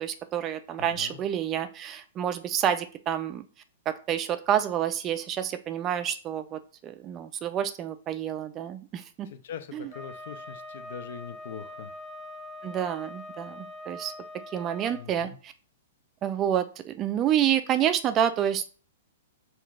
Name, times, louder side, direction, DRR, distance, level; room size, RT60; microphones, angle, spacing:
voice 1, 0.0-3.5 3.9-9.3 9.7-9.9 12.6-14.1 14.5-15.5 16.2-18.7, right 10 dB, 30° right, 10 dB, 0.4 m, -28 dB
voice 2, 0.8-1.2 9.3-11.9 14.9-15.4, left 8 dB, 65° left, 9 dB, 0.5 m, -42 dB
Wind instrument woodwind instrument, 9.9-15.0, left 1 dB, 10° right, 0.8 m, -43 dB
5.7 x 2.4 x 2.4 m, 0.40 s
hypercardioid pair, 135°, 0 cm